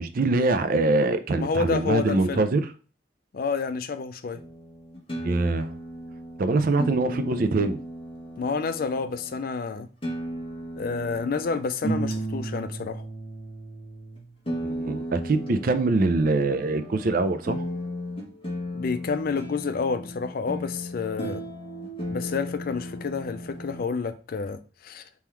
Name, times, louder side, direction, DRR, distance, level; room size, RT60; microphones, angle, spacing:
voice 1, 0.0-2.7 5.2-5.7 6.4-7.8 14.6-17.7, right 3 dB, 50° right, 0.4 m, -24 dB
voice 2, 1.4-2.4 3.3-4.4 8.4-9.9 10.8-13.1 18.7-21.4 22.1-25.0, left 5 dB, 50° left, 0.4 m, -29 dB
sound 1, 4.3-9.4 10.0-23.8, right 1 dB, 30° left, 1.1 m, -35 dB
3.7 x 3.0 x 4.4 m
head